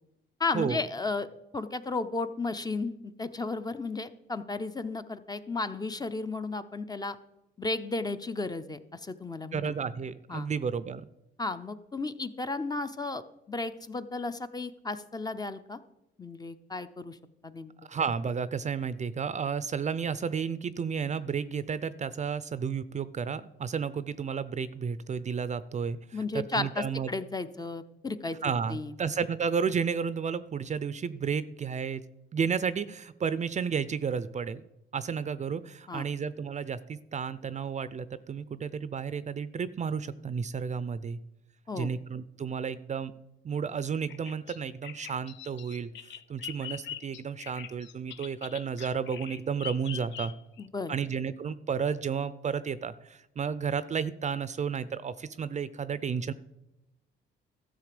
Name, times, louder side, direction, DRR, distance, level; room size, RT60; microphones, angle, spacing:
voice 1, 0.4-1.3 1.5-7.2 7.6-9.7 10.3-10.5 11.4-15.8 16.2-17.2 17.4-17.7 26.1-28.4 28.7-28.9 35.9-36.1 41.7-41.9 50.6-50.9, left 3 dB, 20° left, 10 dB, 0.6 m, -34 dB
voice 2, 9.5-11.0 17.9-27.1 28.4-32.0 32.3-34.6 34.9-41.2 41.8-43.1 43.4-45.9 46.3-50.3 50.9-56.3, right 6 dB, 35° right, 15 dB, 0.5 m, -32 dB
Bird vocalization bird call bird song, 44.1-50.7, left 10 dB, 65° left, 0.6 m, -43 dB
13.0 x 6.9 x 5.1 m, 0.89 s
cardioid pair, 90°, 20 cm